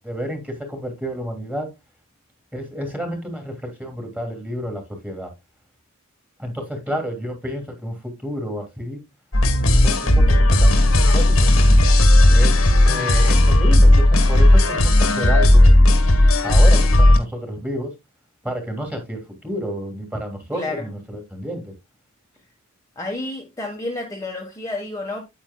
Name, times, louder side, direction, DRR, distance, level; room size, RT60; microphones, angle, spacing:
voice 1, 0.0-1.7 2.5-5.3 6.4-9.0 9.6-11.5 12.3-15.7 16.4-17.9 18.4-21.7, equal, 5° right, 3.0 m, -30 dB
sound 1, 9.3-17.2, left 1 dB, 80° left, 1.7 m, -14 dB
voice 2, 20.5-20.9 22.9-25.2, left 2 dB, 15° left, 1.4 m, -30 dB
9.0 x 9.0 x 2.3 m
head